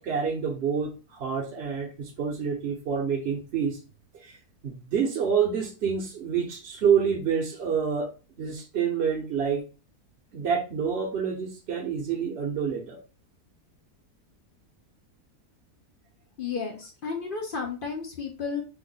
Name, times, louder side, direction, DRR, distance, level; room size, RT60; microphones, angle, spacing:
voice 1, 0.0-3.8 4.2-4.4 4.6-8.1 8.4-9.7 10.3-13.0, right 7 dB, 60° right, 0 dB, 0.7 m, -27 dB
voice 2, 16.4-18.6, left 5 dB, 65° left, 2 dB, 0.5 m, -32 dB
3.5 x 2.1 x 3.7 m, 0.33 s
omnidirectional pair, 1.6 m